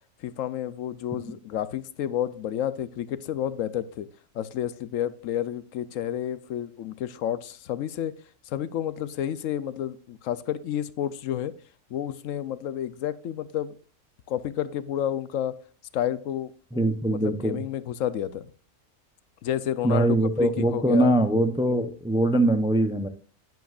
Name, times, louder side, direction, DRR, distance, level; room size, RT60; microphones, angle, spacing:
voice 1, 0.2-4.1 4.3-8.1 8.5-11.5 11.9-13.7 14.3-15.5 15.9-16.8 17.1-18.5 19.4-21.1, left 10 dB, 80° left, 16 dB, 1.0 m, -30 dB
voice 2, 16.7-17.6 19.8-23.1, right 1 dB, 5° right, 8 dB, 0.4 m, -22 dB
10.5 x 9.4 x 2.4 m, 0.38 s
omnidirectional pair, 1.4 m